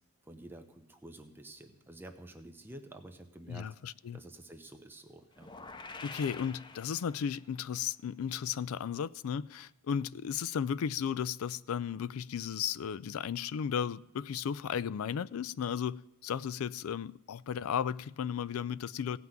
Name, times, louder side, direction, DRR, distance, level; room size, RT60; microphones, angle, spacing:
voice 1, 0.2-3.7 4.1-5.5, right 1 dB, 10° right, 0.8 m, -50 dB
voice 2, 3.5-4.2 6.0-19.2, left 8 dB, 85° left, 0.4 m, -35 dB
sound 1, 5.3-7.6, left 3 dB, 20° left, 0.5 m, -47 dB
16.5 x 5.9 x 9.2 m
head